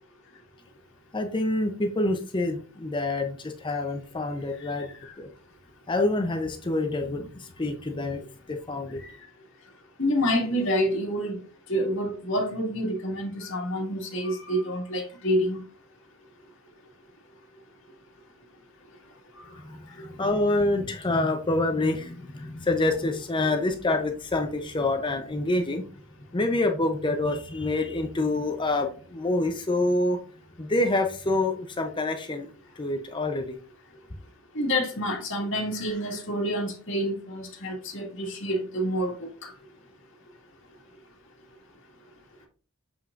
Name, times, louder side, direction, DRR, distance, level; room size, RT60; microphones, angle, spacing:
voice 1, 1.1-4.9 5.2-5.3 5.9-8.2 8.5-9.0 19.6-25.8 26.3-30.2 30.6-33.6, left 2 dB, 20° left, 0.6 m, -27 dB
voice 2, 10.0-11.4 11.7-15.6 34.5-39.5, equal, 60° left, 2.0 m, -28 dB
7.0 x 5.8 x 2.5 m
head